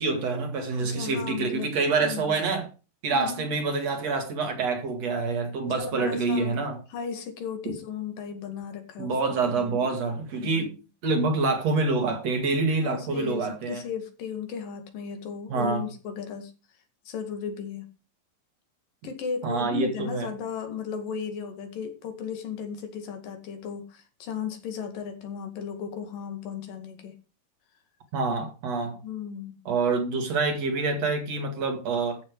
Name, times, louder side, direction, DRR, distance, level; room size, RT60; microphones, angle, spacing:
voice 1, 0.0-2.7 3.0-6.8 9.0-10.7 11.0-13.8 15.5-15.8 19.4-20.3 28.1-29.0 29.7-32.2, right 4 dB, 55° right, 3.2 m, -26 dB
voice 2, 0.8-1.7 2.0-2.3 3.1-3.5 5.8-6.6 6.9-9.1 9.5-9.9 10.4-10.8 12.8-16.5 17.1-17.9 19.0-27.1 29.0-29.6, left 7 dB, 90° left, 3.9 m, -35 dB
14.0 x 7.2 x 4.8 m
omnidirectional pair, 3.8 m